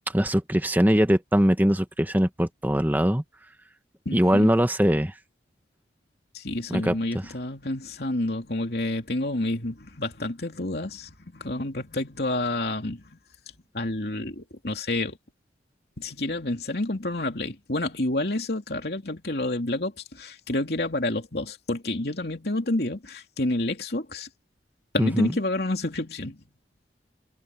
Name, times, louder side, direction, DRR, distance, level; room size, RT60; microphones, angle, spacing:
voice 1, 0.1-3.2 4.1-5.1 6.7-6.9 25.0-25.3, equal, 10° right, 1.2 m, -21 dB
voice 2, 4.0-4.5 6.3-13.0 13.7-15.2 16.0-24.3 24.9-26.4, left 2 dB, 60° left, 3.1 m, -29 dB
head